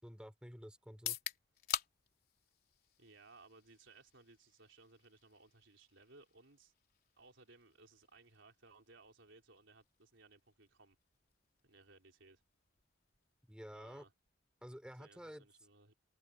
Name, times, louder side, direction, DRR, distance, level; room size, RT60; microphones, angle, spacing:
voice 1, 0.0-1.2 13.5-14.0 14.6-15.5, equal, 5° right, 4.2 m, -51 dB
sound 1, 0.9-14.8, left 9 dB, 50° left, 3.8 m, -50 dB
voice 2, 3.0-6.7 7.2-11.0 11.6-12.4 13.7-14.1 15.0-15.9, right 3 dB, 80° right, 4.1 m, -62 dB
open air
head